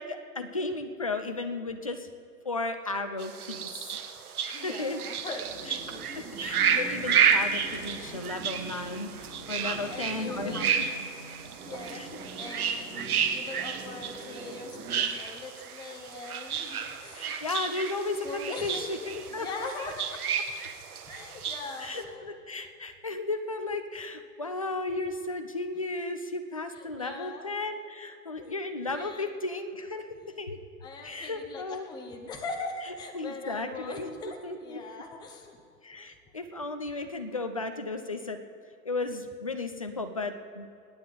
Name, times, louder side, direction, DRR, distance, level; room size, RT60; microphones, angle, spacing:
voice 1, 0.0-2.1 2.4-4.0 4.5-5.0 5.7-5.8 6.1-10.7 11.9-12.1 17.1-19.7 21.8-30.1 30.4-30.6 31.0-31.9 33.1-34.1 34.4-34.8 35.8-38.4 38.8-40.7, left 3 dB, 25° left, 8 dB, 0.3 m, -34 dB
sound 1, 3.2-22.0, right 7 dB, 65° right, 1.5 m, -31 dB
voice 2, 4.5-5.8 9.6-10.8 11.1-11.3 11.6-12.0 12.4-17.4 17.8-17.9 18.2-20.2 21.1-22.7 26.7-27.5 28.4-28.6 28.9-29.3 30.8-35.6 36.0-36.1, left 3 dB, 10° left, 3 dB, 0.9 m, -41 dB
sound 2, 5.3-15.0, right 2 dB, 15° right, 2.5 m, -44 dB
26.5 x 9.5 x 3.9 m, 2.5 s
hypercardioid pair, 135°, 48 cm